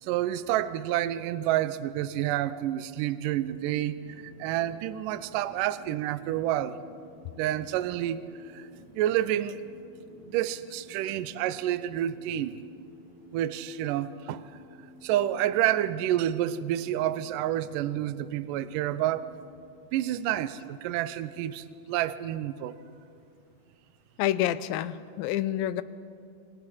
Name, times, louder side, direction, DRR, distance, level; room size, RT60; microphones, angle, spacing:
voice 1, 0.0-6.8 7.4-8.7 8.9-9.6 10.2-12.6 13.3-14.4 15.0-19.3 19.9-22.8, right 12 dB, 80° right, 13 dB, 2.0 m, -29 dB
sound 1, 3.4-19.5, right 2 dB, 40° right, 3.6 m, -53 dB
voice 2, 24.2-25.8, left 12 dB, 80° left, 15 dB, 2.3 m, -28 dB
28.0 x 23.0 x 4.3 m, 2.4 s
omnidirectional pair, 4.4 m